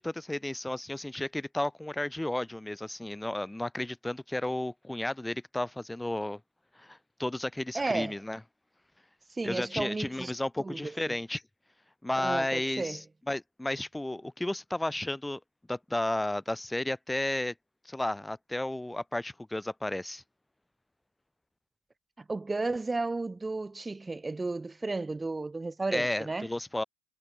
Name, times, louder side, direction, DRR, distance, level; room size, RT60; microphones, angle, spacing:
voice 1, 0.0-6.4 6.8-8.4 9.4-11.4 12.0-13.0 13.3-15.4 15.7-17.5 17.9-20.2 25.9-26.8, left 1 dB, 5° left, 3.7 m, -33 dB
voice 2, 7.7-8.2 9.3-10.3 10.6-11.1 12.2-13.0 22.2-26.5, right 3 dB, 15° right, 2.8 m, -33 dB
hypercardioid pair, 75°, 0 cm